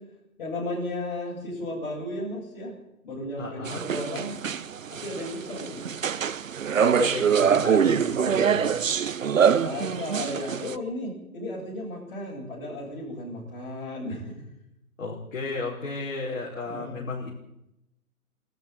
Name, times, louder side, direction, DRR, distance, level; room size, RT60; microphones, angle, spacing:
voice 1, 0.4-2.7 3.0-4.4 4.9-6.1 9.6-14.3 16.7-17.3, left 1 dB, 30° left, -8 dB, 8.0 m, -34 dB
voice 2, 3.4-3.9 4.1-4.3 6.8-8.9 15.0-17.3, left 3 dB, 55° left, -4 dB, 5.4 m, -34 dB
sound 1, 3.7-10.8, right 7 dB, 60° right, 0.9 m, -24 dB
23.5 x 13.5 x 9.3 m, 0.85 s
hypercardioid pair, 170°, 45 cm